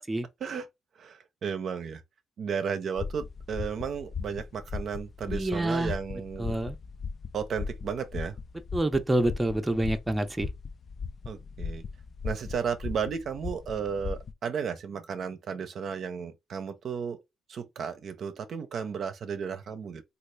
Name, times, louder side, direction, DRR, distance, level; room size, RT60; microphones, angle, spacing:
voice 1, 1.0-2.0 2.4-6.6 7.3-8.4 11.3-11.8 12.2-17.2 17.5-20.0, right 6 dB, 60° right, 0.5 m, -34 dB
sound 1, 3.0-14.3, left 5 dB, 45° left, 0.3 m, -38 dB
voice 2, 5.3-5.9 6.4-6.7 8.7-10.5, right 1 dB, 15° right, 0.5 m, -27 dB
3.1 x 2.4 x 3.2 m
cardioid pair, 90°, 0 cm